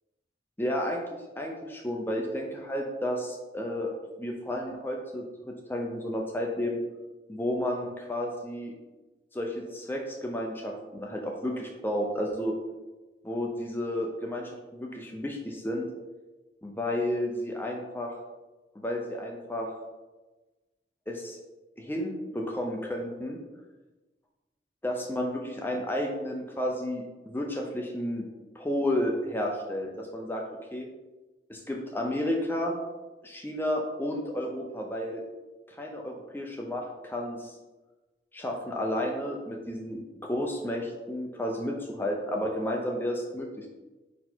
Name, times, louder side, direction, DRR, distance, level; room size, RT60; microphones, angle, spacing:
voice 1, 0.6-3.9 4.2-6.8 7.3-8.7 9.3-12.6 13.2-15.9 16.6-18.1 18.7-19.7 21.1-21.4 21.8-23.4 24.8-28.2 28.6-30.4 30.7-30.9 31.5-32.8 33.2-35.2 35.7-37.5 38.3-43.7, left 1 dB, 10° left, 1 dB, 0.6 m, -32 dB
5.2 x 4.3 x 4.4 m, 1.2 s
head